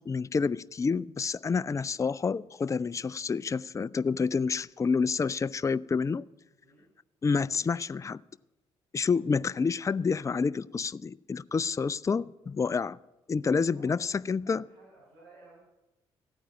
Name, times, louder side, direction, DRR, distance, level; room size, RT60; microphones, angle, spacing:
voice 1, 0.1-6.2 7.2-8.2 8.9-13.0 13.3-14.6, left 5 dB, 25° left, 0.4 m, -28 dB
voice 2, 13.4-15.6, right 2 dB, 85° right, 5.7 m, -56 dB
15.5 x 9.3 x 8.9 m
hypercardioid pair, 45°, 13 cm